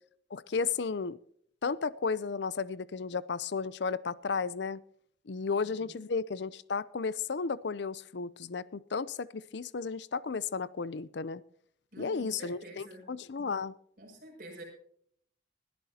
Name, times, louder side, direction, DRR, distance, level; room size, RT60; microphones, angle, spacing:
voice 1, 0.3-1.2 1.6-4.8 5.3-11.4 12.0-13.7, left 5 dB, 70° left, 19 dB, 0.5 m, -33 dB
voice 2, 5.5-6.1 11.9-13.1 13.4-13.5 14.0-14.6, right 1 dB, 45° right, -2 dB, 6.2 m, -48 dB
21.5 x 13.0 x 2.8 m, 0.65 s
head